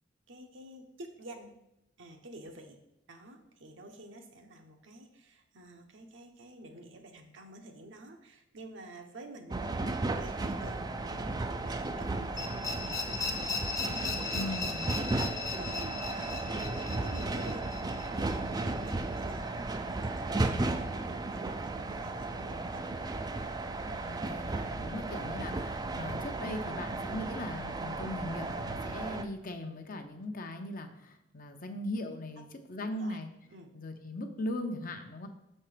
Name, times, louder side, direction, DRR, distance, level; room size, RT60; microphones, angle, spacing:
voice 1, 0.3-1.5 2.0-2.8 3.1-9.7 10.2-14.6 14.8-22.8 32.4-32.5 32.8-33.2 33.5-33.8, right 1 dB, 70° right, 4 dB, 0.9 m, -50 dB
sound 1, 9.5-29.2, right 2 dB, 20° right, 0.4 m, -35 dB
sound 2, 12.4-19.2, left 5 dB, 15° left, 0.7 m, -38 dB
voice 2, 14.3-14.8 24.0-33.3 33.7-35.3, left 1 dB, 45° left, 6 dB, 0.7 m, -39 dB
6.8 x 4.4 x 5.0 m, 0.87 s
head